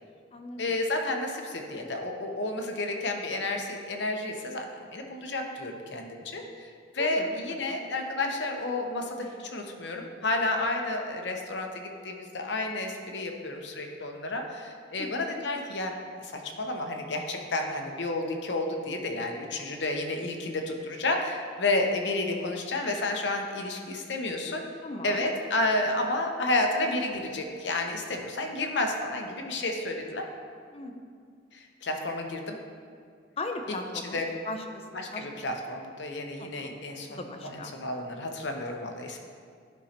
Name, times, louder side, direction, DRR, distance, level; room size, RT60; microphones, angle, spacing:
voice 1, 0.6-15.9 16.2-24.6 25.0-30.3 31.5-32.6 34.1-34.2 34.9-39.2, left 2 dB, 70° left, 3 dB, 0.8 m, -31 dB
voice 2, 7.0-7.4 7.7-7.8 15.0-15.1 24.8-25.3 30.7-31.0 33.4-35.3 36.4-36.8 37.1-37.7, left 2 dB, 30° left, 6 dB, 0.5 m, -38 dB
11.5 x 5.5 x 2.9 m, 2.2 s
head